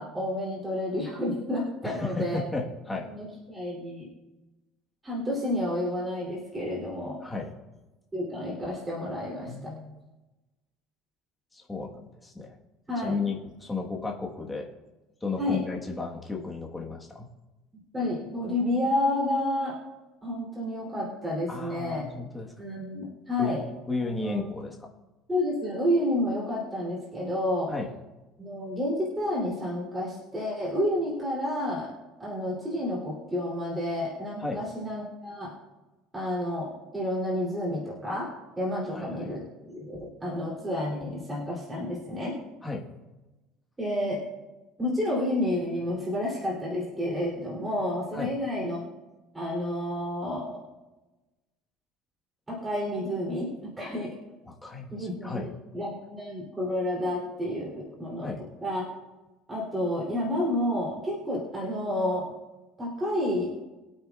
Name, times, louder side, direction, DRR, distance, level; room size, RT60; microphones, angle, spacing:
voice 1, 0.0-2.4 3.1-4.1 5.0-7.2 8.1-9.7 12.9-13.1 15.4-15.6 17.9-19.8 20.2-22.0 22.6-23.6 24.0-24.5 25.3-27.7 28.4-31.9 32.2-35.5 36.1-38.3 38.6-42.3 43.8-44.2 44.8-48.8 49.3-50.6 52.5-54.2 54.9-58.3 58.6-58.8 59.5-62.2 62.8-63.5, left 1 dB, 10° right, -6 dB, 3.1 m, -30 dB
voice 2, 1.8-3.1 7.2-7.5 9.5-10.0 11.5-12.6 13.0-14.7 15.2-17.3 21.5-22.5 23.4-24.8 27.7-27.9 34.4-34.6 38.9-39.3 42.6-42.9 48.1-48.3 54.5-55.5 58.2-58.4, left 3 dB, 10° left, -1 dB, 1.4 m, -34 dB
23.0 x 8.7 x 2.4 m, 1.1 s
cardioid pair, 165°, 0 cm